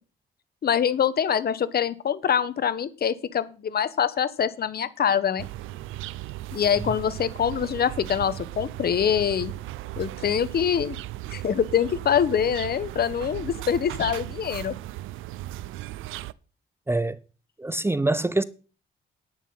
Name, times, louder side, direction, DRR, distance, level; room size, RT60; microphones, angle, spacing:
voice 1, 0.6-5.5 6.5-9.5 10.0-11.0 11.3-14.7, left 8 dB, 50° left, 1.1 m, -24 dB
sound 1, 5.4-16.3, right 16 dB, 90° right, 0.5 m, -37 dB
voice 2, 16.9-17.2 17.6-18.4, right 2 dB, 10° right, 0.6 m, -25 dB
10.5 x 9.7 x 5.6 m
cardioid pair, 90°, 20 cm